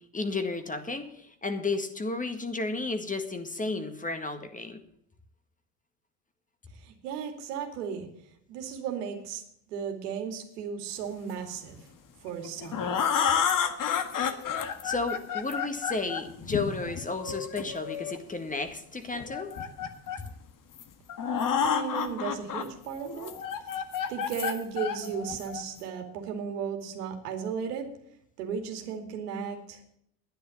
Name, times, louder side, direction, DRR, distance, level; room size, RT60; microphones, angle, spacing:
voice 1, 0.1-4.8 14.8-19.5, left 3 dB, 15° left, 8 dB, 1.8 m, -32 dB
voice 2, 6.8-8.1 8.5-9.4 9.7-11.8 12.2-12.9 21.6-23.3 24.1-27.9 28.4-29.8, right 7 dB, 85° right, 4 dB, 2.6 m, -35 dB
sound 1, 12.3-18.2 19.1-20.3 20.8-20.9 21.1-22.6 23.1-25.8, left 7 dB, 45° left, 1.7 m, -30 dB
10.5 x 9.9 x 7.1 m, 0.72 s
supercardioid pair, 85°, 45 cm